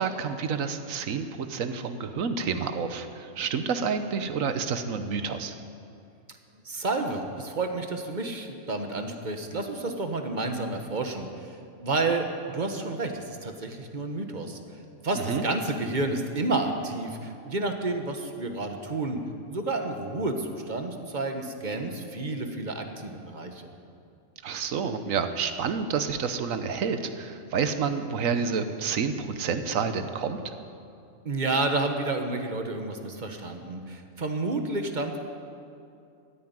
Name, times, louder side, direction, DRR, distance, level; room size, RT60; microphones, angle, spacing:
voice 1, 0.0-5.5 15.1-15.4 24.4-30.5, right 6 dB, 80° right, 9 dB, 1.3 m, -29 dB
voice 2, 6.6-12.3 12.5-14.6 15.0-19.2 19.5-23.6 31.2-35.2, right 2 dB, 35° right, 5 dB, 1.3 m, -30 dB
14.5 x 9.6 x 9.5 m, 2.5 s
omnidirectional pair, 1.4 m